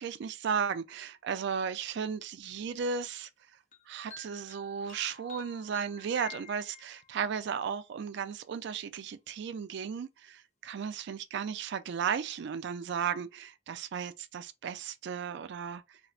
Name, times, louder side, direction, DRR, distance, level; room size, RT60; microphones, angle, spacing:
voice 1, 0.0-3.3 3.9-16.0, right 6 dB, 65° right, 0.3 m, -35 dB
sound 1, 3.7-7.2, left 5 dB, 40° left, 0.7 m, -50 dB
4.1 x 2.0 x 2.4 m
head